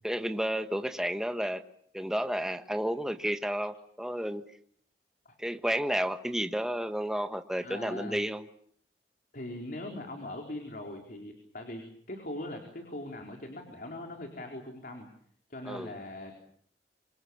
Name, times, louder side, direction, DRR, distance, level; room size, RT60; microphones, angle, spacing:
voice 1, 0.0-1.6 1.9-4.4 5.4-8.5 15.6-15.9, equal, 5° right, 8 dB, 1.3 m, -31 dB
voice 2, 7.6-8.2 9.3-15.1 15.5-16.3, left 1 dB, 55° left, 3 dB, 4.2 m, -41 dB
26.5 x 25.5 x 7.1 m, 0.63 s
head